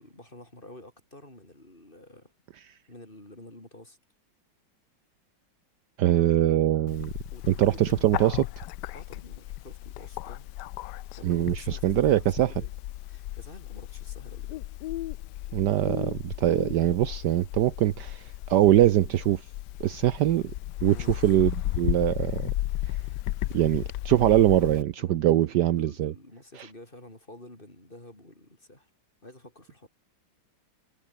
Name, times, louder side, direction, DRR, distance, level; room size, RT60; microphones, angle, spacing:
voice 1, 0.0-2.3 2.9-4.0 7.3-8.5 8.9-10.5 11.2-12.7 13.0-14.6 20.9-21.1 25.0-28.9 29.2-29.9, left 1 dB, 25° left, 5.8 m, -49 dB
voice 2, 6.0-7.1 7.6-8.4 11.2-12.5 15.5-19.4 19.8-20.5 20.8-22.4 23.5-26.1, right 13 dB, 70° right, 1.2 m, -23 dB
Bird, 6.9-24.8, left 15 dB, 70° left, 1.1 m, -35 dB
omnidirectional pair, 2.1 m